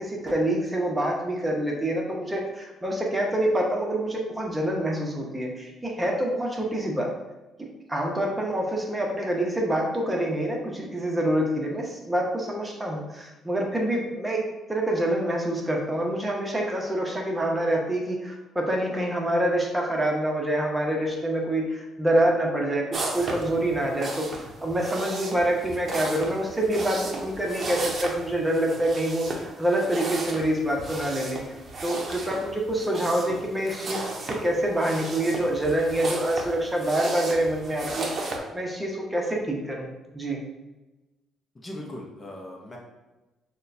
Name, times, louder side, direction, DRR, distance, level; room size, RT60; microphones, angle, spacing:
voice 1, 0.0-7.1 7.9-14.4 14.7-31.4 31.8-40.4, right 1 dB, 15° right, -1 dB, 0.9 m, -26 dB
sound 1, 22.9-38.4, right 2 dB, 45° right, 0.7 m, -35 dB
voice 2, 41.5-42.8, left 1 dB, 25° left, -1 dB, 0.7 m, -39 dB
6.4 x 2.2 x 2.6 m, 1.1 s
cardioid pair, 80°, 0 cm